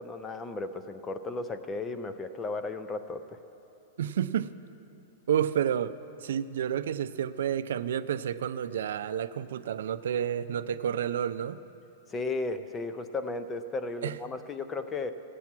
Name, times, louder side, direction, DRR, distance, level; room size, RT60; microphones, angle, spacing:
voice 1, 0.0-3.4 12.1-15.1, left 3 dB, 10° left, 10 dB, 0.4 m, -35 dB
voice 2, 4.0-4.5 5.3-5.9 6.2-11.6 14.0-14.2, right 9 dB, 75° right, 13 dB, 0.4 m, -30 dB
16.5 x 8.4 x 6.0 m, 2.9 s
supercardioid pair, 175°, 0 cm